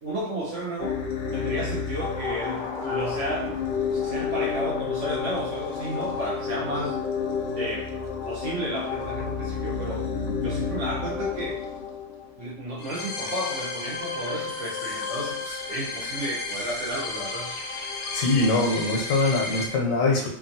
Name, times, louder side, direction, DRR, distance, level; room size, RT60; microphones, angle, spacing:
voice 1, 0.0-1.0 1.3-7.1 7.5-7.9 8.2-10.1 10.4-11.6 12.4-17.5, right 1 dB, 65° right, -5 dB, 1.3 m, -33 dB
sound 1, 0.8-19.7, left 5 dB, 65° left, 0.5 m, -31 dB
voice 2, 18.1-20.3, left 2 dB, 85° left, 0 dB, 1.1 m, -23 dB
3.0 x 2.3 x 2.7 m, 0.65 s
omnidirectional pair, 1.3 m